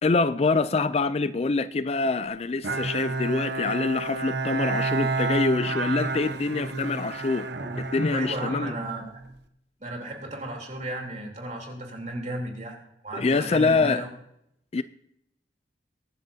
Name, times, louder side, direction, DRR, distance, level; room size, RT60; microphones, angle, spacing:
voice 1, 0.0-7.5 7.9-8.7 13.1-14.1 14.7-14.8, left 3 dB, 35° left, 0.4 m, -25 dB
Bowed string instrument, 2.6-9.3, right 3 dB, 65° right, 1.1 m, -30 dB
voice 2, 8.1-9.2 9.8-14.1, right 1 dB, 40° right, 3.4 m, -34 dB
23.0 x 10.5 x 2.8 m
head